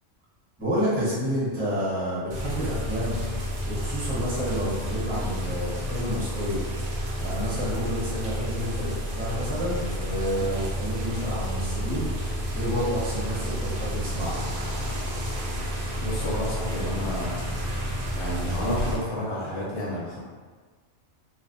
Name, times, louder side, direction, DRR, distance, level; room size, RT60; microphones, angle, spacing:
voice 1, 0.6-3.2 3.7-6.7 7.2-14.4, equal, 25° right, -8 dB, 0.8 m, -30 dB
sound 1, 2.3-19.0, equal, 75° right, 0.3 m, -30 dB
voice 2, 16.0-17.4 18.1-20.2, left 1 dB, 70° left, -5 dB, 0.9 m, -30 dB
2.5 x 2.0 x 2.6 m, 1.5 s
omnidirectional pair, 1.3 m